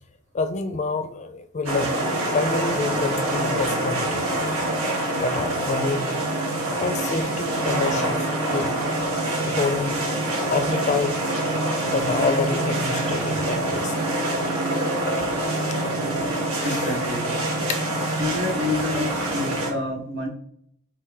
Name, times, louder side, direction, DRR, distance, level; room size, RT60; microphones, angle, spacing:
voice 1, 0.3-2.0 2.3-4.3 5.1-6.0 6.8-8.8 9.4-10.0 10.5-11.2 11.9-14.0 16.5-17.0 19.0-19.1, left 4 dB, 35° left, 9 dB, 0.4 m, -27 dB
sound 1, 1.6-19.7, right 1 dB, 85° right, 1.6 m, -25 dB
voice 2, 16.6-17.3 18.2-20.3, left 2 dB, 65° right, 0 dB, 1.5 m, -28 dB
4.7 x 3.2 x 3.5 m, 0.65 s
head